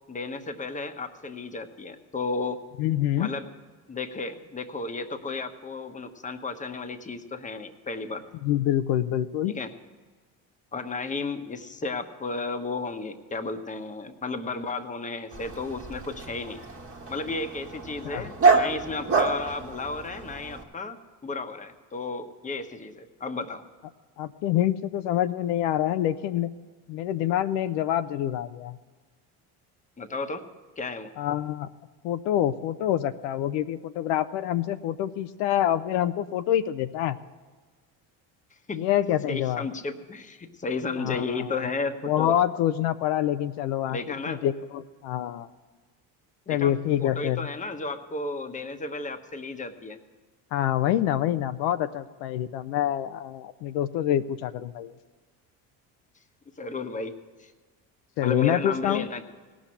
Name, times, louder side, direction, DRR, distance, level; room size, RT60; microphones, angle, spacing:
voice 1, 0.1-2.6 3.2-3.5 3.9-8.2 9.5-9.7 10.7-16.6 17.1-23.6 30.0-30.5 30.8-31.1 38.7-38.9 39.3-42.4 43.9-44.4 46.5-46.7 47.0-50.0 56.6-57.5 58.2-59.2, left 3 dB, 20° left, 7 dB, 1.0 m, -33 dB
voice 2, 2.8-3.3 8.4-9.6 18.0-18.2 24.2-26.5 26.9-28.8 31.2-31.7 32.0-37.2 38.7-39.6 41.0-41.5 42.0-44.0 44.3-45.5 46.5-47.5 50.5-54.9 58.2-59.1, left 11 dB, 80° left, 11 dB, 0.7 m, -26 dB
Dog, 15.3-20.6, right 4 dB, 35° right, 1.5 m, -27 dB
17.5 x 6.2 x 9.9 m, 1.4 s
supercardioid pair, 100°, 42 cm